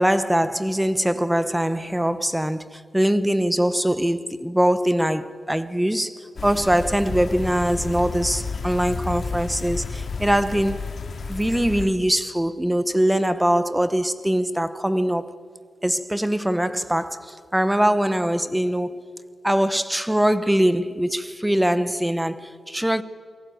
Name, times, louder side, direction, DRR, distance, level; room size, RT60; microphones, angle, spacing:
voice 1, 0.0-10.9 11.3-15.4 15.8-19.1 19.4-23.0, equal, 5° right, 0.9 m, -22 dB
sound 1, 6.4-11.9, left 4 dB, 45° left, 2.3 m, -31 dB
27.5 x 23.0 x 9.3 m
wide cardioid pair, 180°, 0 cm